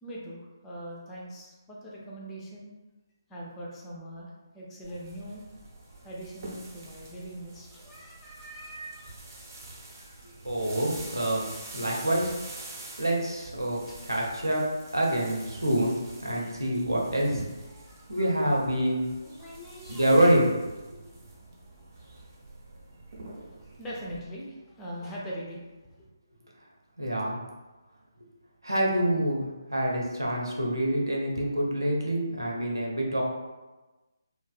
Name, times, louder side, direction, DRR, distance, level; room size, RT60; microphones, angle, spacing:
voice 1, 0.0-2.7 3.3-5.4 6.0-9.3 13.9-14.0 17.7-18.3 19.2-20.1 23.4-26.1, equal, 10° left, -5 dB, 0.3 m, -42 dB
sound 1, 4.8-24.2, right 2 dB, 45° right, 0.5 m, -46 dB
voice 2, 10.4-11.4 11.7-12.3 12.6-14.7 14.9-17.5 18.1-19.1 19.9-20.5 27.0-27.4 28.6-33.2, right 1 dB, 85° right, -2 dB, 0.6 m, -26 dB
2.5 x 2.0 x 2.4 m, 1.2 s
figure-of-eight pair, 145°, 2 cm